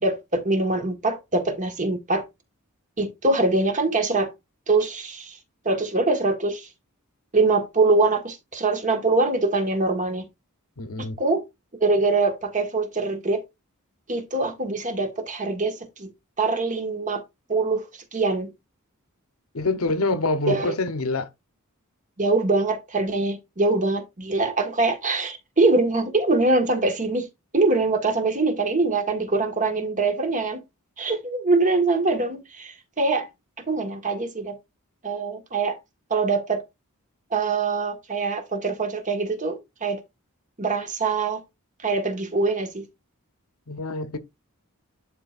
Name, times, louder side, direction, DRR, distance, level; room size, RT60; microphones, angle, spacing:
voice 1, 0.0-2.2 3.0-4.3 4.7-5.4 5.6-6.7 7.3-10.3 11.2-11.4 11.8-13.4 14.1-16.1 16.4-17.2 17.5-17.9 18.1-18.5 20.5-20.7 22.2-27.2 27.5-30.6 31.0-33.3 33.7-34.5 35.0-35.8 36.1-36.6 37.3-40.0 40.6-41.4 41.8-42.8, right 3 dB, 35° right, 1.6 m, -23 dB
voice 2, 10.8-11.2 19.5-21.3 43.7-44.2, left 2 dB, 70° left, 1.0 m, -26 dB
11.0 x 4.4 x 2.5 m
head